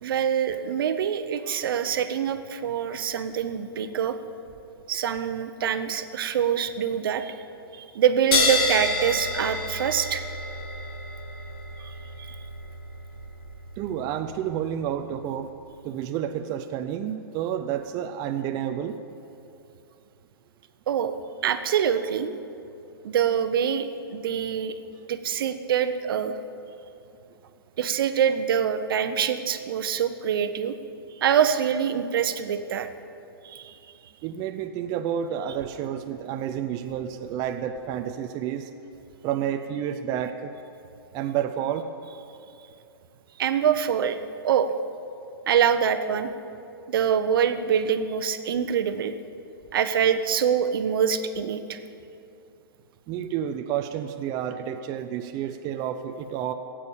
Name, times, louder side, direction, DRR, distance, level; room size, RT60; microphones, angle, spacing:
voice 1, 0.0-4.1 4.9-7.3 7.8-10.2 11.8-11.9 20.9-21.1 21.4-22.4 23.0-24.7 25.1-26.3 27.8-30.7 31.2-32.9 33.4-33.8 43.4-44.2 44.4-44.7 45.5-46.3 46.9-49.1 49.7-51.8, right 8 dB, 65° right, 10 dB, 0.9 m, -25 dB
sound 1, 8.3-15.3, left 3 dB, 70° left, 3.5 m, -30 dB
voice 2, 13.8-15.5 15.8-19.0 34.2-38.7 39.2-40.5 41.1-41.9 53.1-56.5, right 9 dB, 30° right, 7 dB, 0.6 m, -30 dB
15.0 x 8.6 x 7.2 m, 2.7 s
hypercardioid pair, 125°, 13 cm